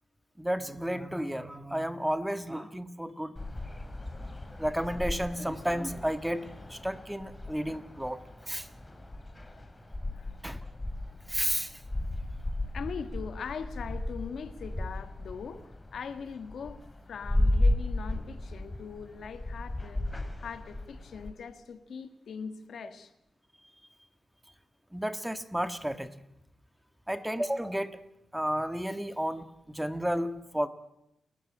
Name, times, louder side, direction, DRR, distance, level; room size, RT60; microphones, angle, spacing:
voice 1, 0.4-3.4 3.6-8.2 8.5-8.7 10.4-10.7 11.3-11.8 22.8-22.9 24.9-26.1 27.1-28.0 28.3-30.7, equal, 5° right, 11 dB, 1.6 m, -32 dB
sound 1, 3.4-21.3, left 1 dB, 20° left, 3.1 m, -35 dB
voice 2, 9.1-9.7 10.1-10.4 12.7-23.1, left 6 dB, 75° left, 11 dB, 1.8 m, -41 dB
29.5 x 14.5 x 8.8 m, 0.83 s
cardioid pair, 80°, 0 cm